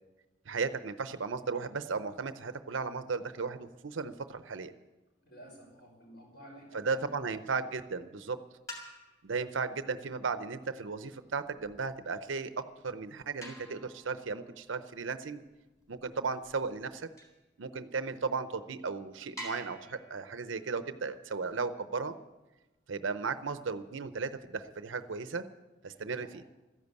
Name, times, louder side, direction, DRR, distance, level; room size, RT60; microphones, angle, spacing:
voice 1, 0.5-4.7 6.7-8.4 9.2-15.4 15.9-17.1 17.6-22.2 22.9-25.4 25.8-26.3, right 4 dB, 80° right, 11 dB, 0.7 m, -35 dB
voice 2, 5.2-7.4 25.9-26.4, right 1 dB, 55° left, 0 dB, 5.5 m, -53 dB
sound 1, 8.7-9.4 11.0-17.5 18.2-18.3 18.7-18.8 19.4-22.0 24.1-25.1, equal, 15° left, 3.4 m, -51 dB
14.0 x 10.5 x 8.3 m, 1.1 s
head